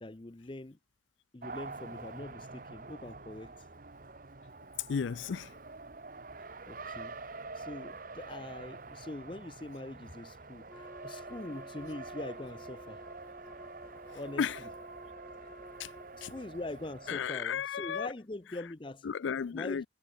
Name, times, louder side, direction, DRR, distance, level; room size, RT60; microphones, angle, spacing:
voice 1, 0.0-0.8 1.3-3.5 6.7-13.0 14.1-14.7 16.2-19.1 19.5-19.8, left 2 dB, 25° left, 0.6 m, -43 dB
Race car auto racing, 1.4-17.3, right 3 dB, 45° right, 1.3 m, -46 dB
voice 2, 4.9-5.5 14.4-14.6 15.8-15.9 16.2-16.3 17.1-18.1 19.0-19.8, left 7 dB, 75° left, 0.4 m, -33 dB
Wind instrument woodwind instrument, 10.7-16.5, left 1 dB, 10° left, 1.2 m, -53 dB
head